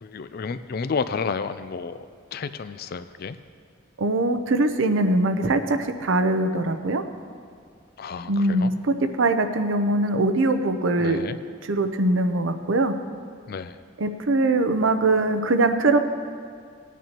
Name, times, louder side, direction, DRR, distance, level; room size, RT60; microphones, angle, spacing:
voice 1, 0.0-2.0 2.3-3.4 8.0-8.7 9.8-9.9 11.0-11.4 13.5-13.8, left 5 dB, 50° left, 12 dB, 0.4 m, -31 dB
voice 2, 4.0-7.0 8.3-8.7 9.2-11.2 11.7-12.9 14.0-16.0, right 2 dB, 80° right, 8 dB, 0.7 m, -22 dB
18.5 x 9.2 x 3.0 m, 2.1 s
head